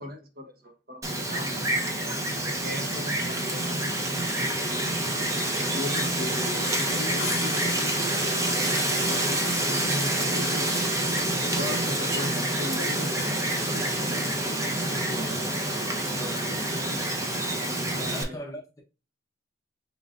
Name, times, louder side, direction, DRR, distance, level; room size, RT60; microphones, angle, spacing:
voice 1, 0.0-2.0 2.4-3.9 4.4-4.9 5.5-8.7 9.0-10.7 11.5-14.5 15.2-15.3 17.9-18.4, left 1 dB, 55° right, 1.0 m, -38 dB
Wind, 1.0-18.2, right 1 dB, 20° right, 0.7 m, -27 dB
sound 1, 7.2-8.3, left 9 dB, 90° left, 0.6 m, -38 dB
voice 2, 14.8-15.5 16.1-16.7 18.0-18.8, left 1 dB, 20° left, 0.9 m, -41 dB
4.9 x 3.1 x 2.4 m
head